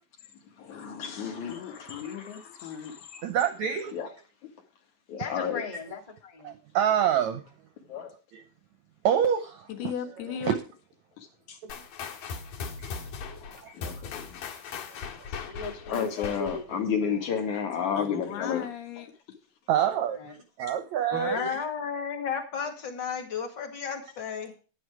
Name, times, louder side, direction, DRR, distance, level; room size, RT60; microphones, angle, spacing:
voice 1, 0.6-3.3 3.9-4.1 5.1-5.6 7.9-8.1 11.5-11.6 13.4-14.4 15.9-18.7, left 7 dB, 55° left, 4 dB, 3.0 m, -32 dB
voice 2, 1.5-2.9 9.7-10.6 18.0-19.1, left 8 dB, 90° left, 6 dB, 3.6 m, -37 dB
voice 3, 3.2-4.0 6.4-7.4 8.3-8.4 9.0-9.7 10.4-10.5 12.8-12.9 13.3-13.7 19.7-21.6, right 9 dB, 75° right, 8 dB, 1.7 m, -27 dB
voice 4, 5.2-6.5 15.4-16.6 20.1-20.3, left 4 dB, 15° left, 2 dB, 1.5 m, -38 dB
sound 1, 11.7-16.8, left 5 dB, 70° left, 3.3 m, -39 dB
voice 5, 21.1-24.5, left 6 dB, 40° left, 5 dB, 2.0 m, -33 dB
10.5 x 9.9 x 4.9 m, 0.34 s
omnidirectional pair, 4.4 m